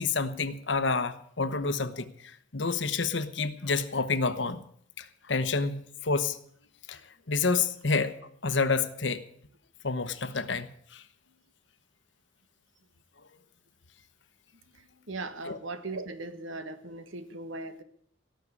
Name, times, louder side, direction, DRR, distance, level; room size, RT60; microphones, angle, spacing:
voice 1, 0.0-4.6 5.0-6.4 6.9-7.0 7.3-8.1 8.4-9.2 9.8-11.0 15.5-15.6, left 4 dB, 70° left, 12 dB, 1.1 m, -29 dB
voice 2, 14.8-17.8, right 2 dB, 85° right, 10 dB, 1.5 m, -39 dB
17.5 x 6.7 x 9.7 m, 0.65 s
head